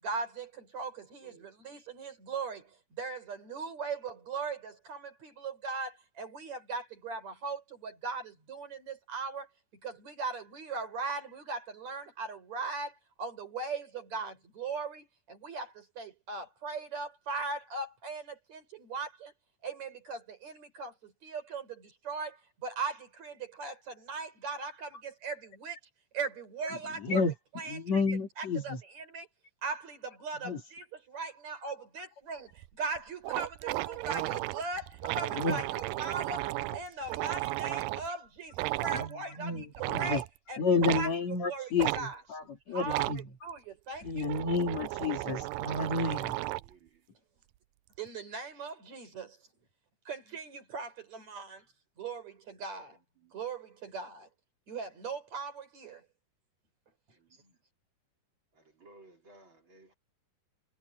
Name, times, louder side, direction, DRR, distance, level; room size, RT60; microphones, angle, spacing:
voice 1, 0.0-9.5 9.8-19.3 19.6-25.8 26.1-27.2 27.5-27.8 28.4-29.3 29.6-39.7 39.9-41.1 41.5-42.2 42.7-44.3 48.0-49.4 50.1-51.7 52.0-53.0 53.3-54.3 54.7-56.1, right 4 dB, 55° right, 5.6 m, -39 dB
voice 2, 27.0-27.3 27.7-28.8 30.4-30.6 35.4-35.6 38.9-40.2 40.6-43.3 44.0-46.4, left 4 dB, 55° left, 4.0 m, -31 dB
sound 1, 32.6-32.7 33.0-33.1 33.2-38.1 38.5-39.1 39.8-40.3 40.8-41.1 41.8-42.0 42.9-43.2 44.0-46.7, right 18 dB, 85° right, 2.2 m, -34 dB
voice 3, 46.3-47.0 53.2-53.3 57.3-57.5 58.5-59.9, right 2 dB, 35° right, 4.4 m, -58 dB
omnidirectional pair, 3.9 m